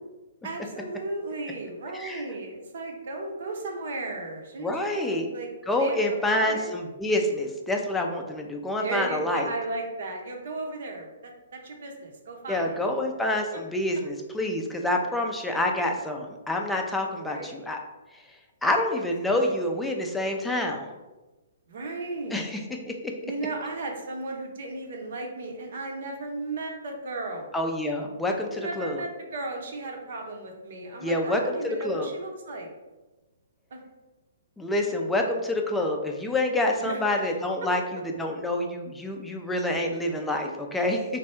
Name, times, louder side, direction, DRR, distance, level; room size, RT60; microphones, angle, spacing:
voice 1, 0.4-5.5 5.8-6.9 8.8-12.8 17.1-17.7 19.3-19.5 21.7-22.5 23.2-27.5 28.5-32.7 33.7-33.8 36.7-37.3 37.6-37.7, right 2 dB, 60° right, 2 dB, 0.8 m, -35 dB
voice 2, 1.9-2.2 4.6-5.3 5.7-9.5 12.5-17.8 18.6-20.9 22.3-22.6 22.9-23.1 27.5-29.0 31.0-32.1 34.6-41.1, left 1 dB, 5° left, 1 dB, 0.4 m, -27 dB
3.3 x 2.2 x 4.3 m, 1.1 s
hypercardioid pair, 130°, 0 cm